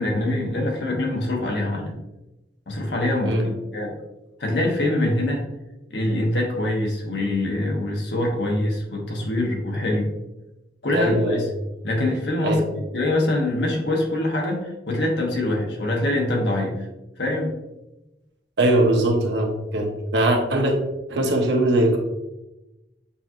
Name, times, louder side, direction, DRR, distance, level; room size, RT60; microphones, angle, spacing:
voice 1, 0.0-2.0 2.7-3.9 4.4-5.4 5.9-10.1 10.8-11.5 11.8-16.9 17.2-17.5, left 1 dB, 80° left, 0 dB, 1.0 m, -24 dB
voice 2, 10.9-11.5 12.4-12.6 18.6-20.8 21.1-22.0, right 1 dB, 85° right, 2 dB, 0.8 m, -21 dB
6.8 x 2.9 x 2.5 m, 0.98 s
head